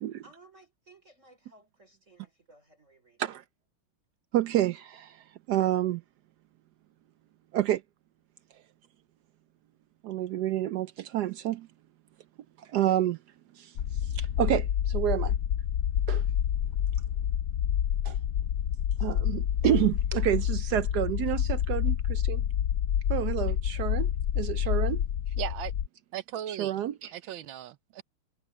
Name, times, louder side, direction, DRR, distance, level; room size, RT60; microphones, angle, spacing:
voice 1, 0.2-3.4, right 2 dB, 35° right, 4.1 m, -58 dB
voice 2, 4.3-6.0 7.5-7.8 10.0-11.7 12.6-13.2 13.6-13.7 14.0-15.4 16.1-16.2 18.0-18.2 19.0-22.4 23.1-24.1 24.4-25.0 26.6-27.1, right 12 dB, 85° right, 0.9 m, -29 dB
sound 1, 13.8-25.9, left 9 dB, 75° left, 0.8 m, -28 dB
voice 3, 25.4-25.7 26.1-26.8 27.1-28.0, right 11 dB, 70° right, 1.5 m, -37 dB
omnidirectional pair, 2.4 m